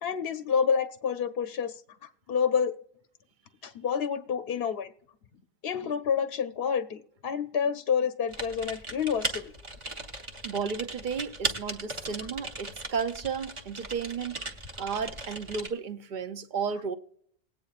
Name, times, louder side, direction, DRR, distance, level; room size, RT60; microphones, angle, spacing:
voice 1, 0.0-2.8 3.6-4.9 5.6-9.5, left 7 dB, 65° left, 0.7 m, -29 dB
Typing, 8.3-15.7, right 2 dB, 30° right, 1.0 m, -37 dB
voice 2, 10.4-14.4 14.8-16.9, right 6 dB, 55° right, 0.6 m, -33 dB
19.5 x 8.9 x 2.4 m
omnidirectional pair, 1.2 m